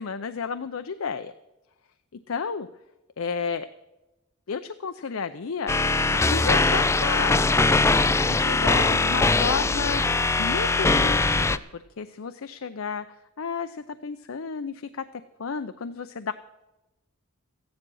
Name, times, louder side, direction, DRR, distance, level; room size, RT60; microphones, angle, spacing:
voice 1, 0.0-1.3 2.3-2.7 3.2-3.7 4.5-5.7 6.1-7.5 8.3-10.0 10.4-11.4 11.7-13.0 13.4-15.0 15.4-16.3, left 5 dB, 70° left, 10 dB, 0.6 m, -32 dB
sound 1, 5.7-11.6, left 3 dB, 15° left, 0.4 m, -21 dB
14.0 x 10.5 x 6.3 m, 0.98 s
head